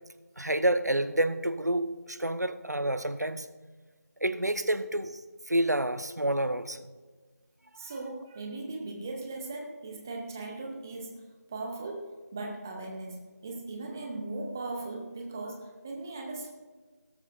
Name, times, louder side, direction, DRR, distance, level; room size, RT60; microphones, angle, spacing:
voice 1, 0.4-3.5 4.2-5.2 5.5-6.8, right 1 dB, 85° right, 11 dB, 1.0 m, -28 dB
voice 2, 7.7-11.2 11.5-16.5, right 2 dB, 10° right, 1 dB, 0.7 m, -38 dB
16.5 x 13.0 x 2.5 m, 1.4 s
figure-of-eight pair, 165°, 9 cm